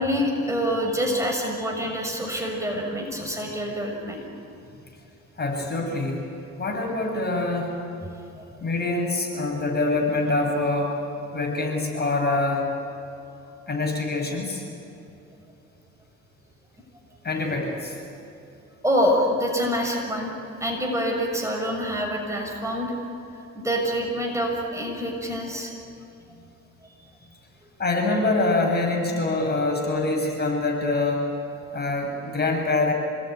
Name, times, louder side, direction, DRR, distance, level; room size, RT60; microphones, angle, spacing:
voice 1, 0.0-4.2 8.4-8.5 18.8-20.3 20.6-22.9 23.5-25.7 26.8-26.9, equal, 10° right, 1 dB, 6.3 m, -26 dB
voice 2, 5.4-6.2 6.6-7.7 8.6-11.0 11.3-12.6 13.7-14.6 17.2-18.0 27.8-31.3 31.7-32.9, left 2 dB, 35° left, 1 dB, 7.5 m, -25 dB
28.0 x 20.5 x 9.6 m, 2.7 s
cardioid pair, 90°, 30 cm